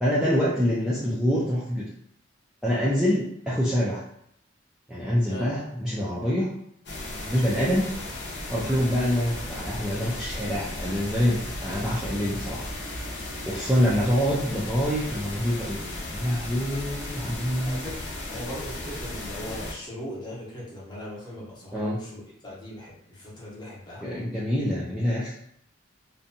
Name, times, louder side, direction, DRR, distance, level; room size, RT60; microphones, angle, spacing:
voice 1, 0.0-1.8 2.6-4.0 4.9-6.5 7.3-7.9 8.5-12.7 13.5-15.8 16.1-17.8 21.7-22.0 24.0-25.3, equal, 5° right, -9 dB, 0.4 m, -25 dB
sound 1, 6.9-19.7, left 1 dB, 60° left, 0.7 m, -35 dB
voice 2, 17.6-17.9 18.3-24.2, left 1 dB, 20° left, -6 dB, 0.8 m, -39 dB
2.6 x 2.2 x 2.6 m, 0.70 s
head